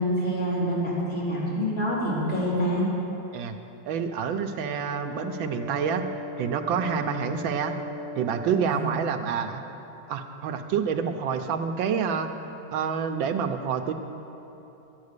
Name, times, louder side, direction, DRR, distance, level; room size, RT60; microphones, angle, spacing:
voice 1, 0.0-2.9 8.6-8.9, equal, 30° left, -8 dB, 3.7 m, -26 dB
voice 2, 3.9-6.1 6.4-7.7 8.2-9.6 10.1-12.3 12.7-13.9, right 7 dB, 85° right, 7 dB, 1.4 m, -28 dB
Brass instrument, 4.6-8.8, equal, 80° left, 4.6 m, -37 dB
12.5 x 9.5 x 6.6 m, 3.0 s
omnidirectional pair, 2.1 m